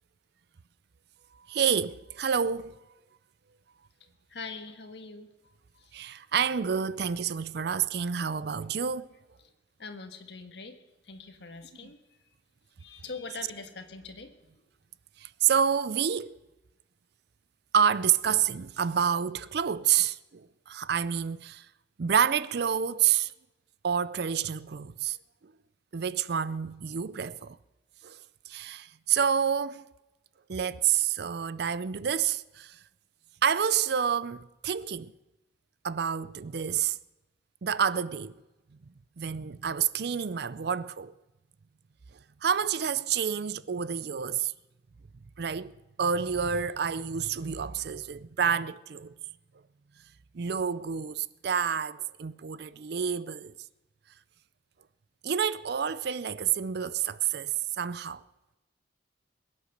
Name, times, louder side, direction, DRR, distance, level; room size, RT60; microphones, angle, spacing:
voice 1, 1.3-2.8 5.9-9.1 15.2-16.4 17.7-21.7 22.0-23.3 23.8-25.2 25.4-25.5 25.9-27.6 28.0-28.2 28.5-29.9 30.5-32.8 33.4-35.1 35.8-37.0 37.6-38.3 39.2-41.1 42.4-44.5 45.4-49.1 50.3-53.5 55.2-58.2, right 7 dB, 55° right, 0.5 m, -28 dB
voice 2, 4.3-5.3 5.7-6.2 9.8-10.8 11.0-12.0 12.8-14.6, left 4 dB, 60° left, 1.6 m, -43 dB
22.0 x 9.5 x 6.6 m
head